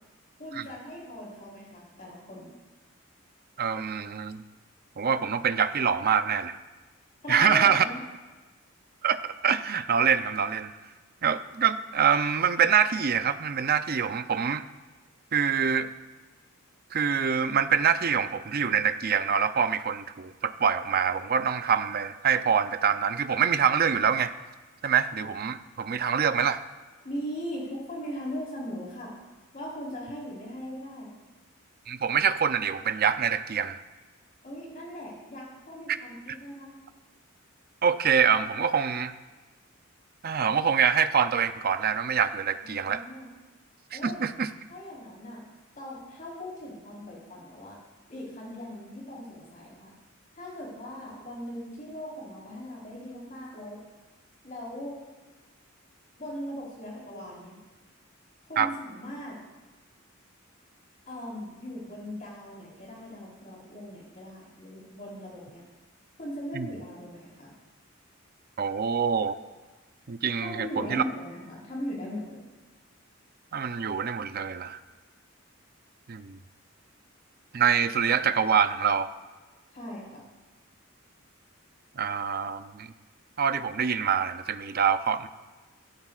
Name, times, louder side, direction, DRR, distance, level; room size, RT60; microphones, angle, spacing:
voice 1, 0.4-2.5 7.2-8.0 27.0-29.1 29.5-31.1 34.4-36.7 42.6-43.3 43.9-44.2 44.7-45.4 45.8-47.8 48.1-49.9 50.3-53.8 54.4-55.0 56.2-57.6 58.5-59.4 61.1-65.6 66.2-67.5 70.4-72.4 79.7-80.2, equal, 40° left, -5 dB, 4.1 m, -39 dB
voice 2, 3.6-4.4 5.0-6.6 7.3-7.8 9.0-10.7 11.2-14.7 15.3-15.9 16.9-24.3 24.8-26.6 31.9-33.8 37.8-39.1 40.2-43.0 43.9-44.5 58.6-58.7 66.5-66.7 68.6-69.4 70.1-71.0 73.5-74.8 76.1-76.4 77.5-79.1 82.0-82.9 83.4-85.3, right 7 dB, 45° right, 11 dB, 0.5 m, -25 dB
16.5 x 13.0 x 2.5 m, 1.2 s
head